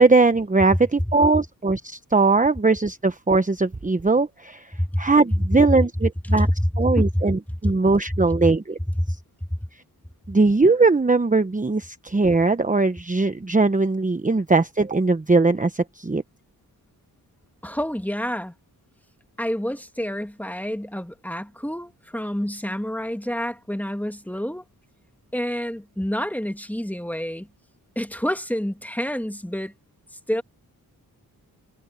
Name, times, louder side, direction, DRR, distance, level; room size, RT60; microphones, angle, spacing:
voice 1, 0.0-6.5 6.8-8.8 9.1-9.2 10.3-16.2, right 3 dB, 20° right, 1.1 m, -20 dB
voice 2, 6.3-7.2 7.6-7.7 8.1-8.3 8.9-9.2 9.5-9.6 17.6-18.5 19.4-24.6 25.3-27.5 28.0-29.7 30.3-30.4, equal, 5° left, 2.3 m, -27 dB
cardioid pair, 50°, 39 cm